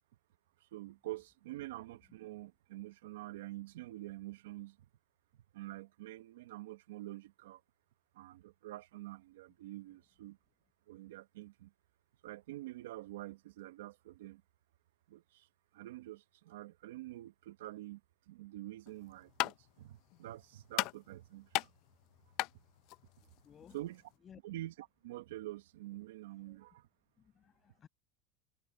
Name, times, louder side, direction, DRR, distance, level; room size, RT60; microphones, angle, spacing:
voice 1, 0.6-4.8 5.5-7.6 8.1-10.4 10.9-11.7 12.2-14.4 15.1-15.5 15.7-18.0 18.3-21.7 23.7-24.0 24.4-26.9, right 16 dB, 80° right, 1.2 m, -47 dB
sound 1, 18.9-24.2, left 21 dB, 60° left, 0.5 m, -40 dB
voice 2, 23.2-23.8 24.2-24.4 26.5-26.6 27.2-27.9, left 8 dB, 35° left, 8.0 m, -59 dB
hypercardioid pair, 100°, 0 cm